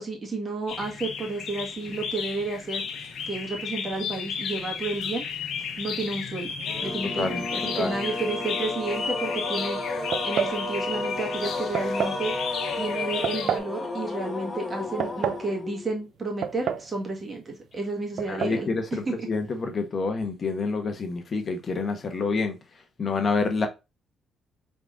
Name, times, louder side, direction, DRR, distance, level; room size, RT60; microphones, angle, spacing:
voice 1, 0.0-2.8 3.3-5.2 5.8-6.5 6.8-9.8 10.2-12.3 12.8-18.7 19.1-19.2, right 3 dB, 30° right, 1.6 m, -31 dB
sound 1, 0.7-13.6, left 6 dB, 70° left, 0.9 m, -33 dB
sound 2, 6.6-16.0, left 2 dB, 25° left, 1.3 m, -32 dB
voice 2, 7.1-7.9 18.3-22.6 23.0-23.7, left 4 dB, 45° left, 1.0 m, -28 dB
sound 3, 10.1-10.6 11.7-12.2 13.2-13.7 14.7-15.5 16.4-16.9 17.2-17.3 18.2-18.6, right 8 dB, 70° right, 0.4 m, -29 dB
4.8 x 3.6 x 2.5 m
cardioid pair, 90°, 0 cm